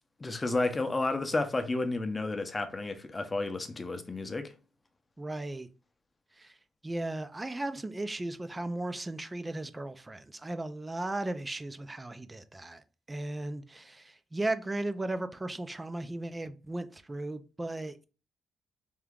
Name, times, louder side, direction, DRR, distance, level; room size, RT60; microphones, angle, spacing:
voice 1, 0.2-4.5, left 2 dB, 25° left, 0.7 m, -31 dB
voice 2, 5.2-5.7 6.4-6.5 6.8-12.8 13.1-18.0, right 2 dB, 15° right, 0.4 m, -36 dB
3.6 x 2.8 x 3.6 m
cardioid pair, 90°, 0 cm